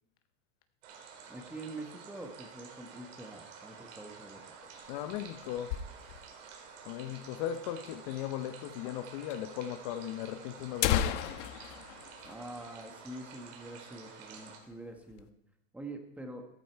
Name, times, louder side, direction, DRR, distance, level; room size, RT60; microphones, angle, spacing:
sound 1, 0.8-14.6, right 6 dB, 80° right, 4.7 m, -51 dB
voice 1, 1.3-4.5 12.2-15.3 15.7-16.4, right 2 dB, 5° right, 1.2 m, -45 dB
sound 2, 4.6-6.4 6.8-6.9 7.1-7.2 7.8-7.9 8.9-9.0 9.3-9.4 10.1-10.2 10.6-13.2 13.5-13.6 14.1-14.3 14.7-15.3, left 10 dB, 70° left, 1.1 m, -35 dB
voice 2, 4.9-5.8 6.8-11.3, left 11 dB, 40° left, 0.7 m, -37 dB
14.0 x 14.0 x 4.5 m
supercardioid pair, 170°, 38 cm